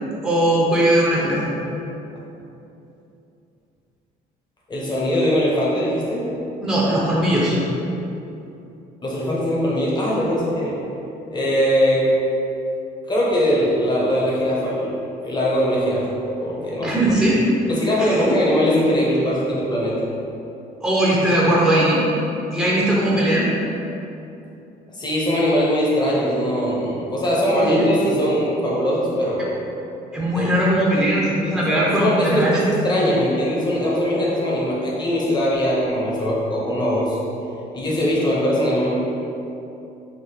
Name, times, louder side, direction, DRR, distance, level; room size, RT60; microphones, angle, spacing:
voice 1, 0.2-1.4 6.6-7.6 16.8-17.4 18.0-18.2 20.8-22.0 22.5-23.5 27.7-27.8 30.1-32.6, right 1 dB, ahead, -6 dB, 0.8 m, -19 dB
voice 2, 4.7-6.3 9.0-10.8 11.3-12.1 13.1-14.9 15.2-16.1 16.4-16.9 17.7-20.0 25.0-29.5 30.3-30.5 31.7-37.2 37.7-38.9, equal, 25° left, -5 dB, 1.2 m, -21 dB
3.8 x 2.9 x 4.4 m, 2.9 s
cardioid pair, 110°, 17 cm